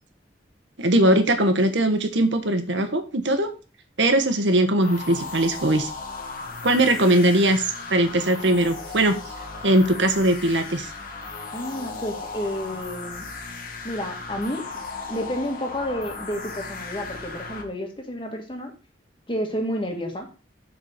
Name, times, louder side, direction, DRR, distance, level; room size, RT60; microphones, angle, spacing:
voice 1, 0.8-3.5 4.0-5.9 6.6-9.2 9.6-10.9, right 1 dB, 85° right, 6 dB, 1.3 m, -20 dB
sound 1, 4.8-17.6, left 3 dB, 50° left, 1.8 m, -36 dB
voice 2, 11.5-13.2 13.8-14.6 15.1-18.7 19.3-20.3, equal, 30° left, 2 dB, 2.0 m, -30 dB
7.5 x 4.3 x 6.5 m, 0.34 s
head